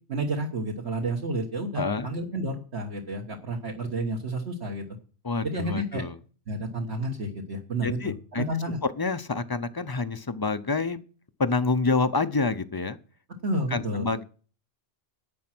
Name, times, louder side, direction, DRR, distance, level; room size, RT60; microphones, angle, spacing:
voice 1, 0.1-4.8 5.4-6.0 6.5-8.8 13.4-14.1, right 1 dB, 65° right, -1 dB, 1.7 m, -30 dB
voice 2, 1.8-2.1 5.2-6.1 7.8-8.4 9.0-11.0 11.4-13.0 13.7-14.2, left 4 dB, 30° left, 12 dB, 0.4 m, -27 dB
11.0 x 8.6 x 6.1 m, 0.40 s
omnidirectional pair, 1.2 m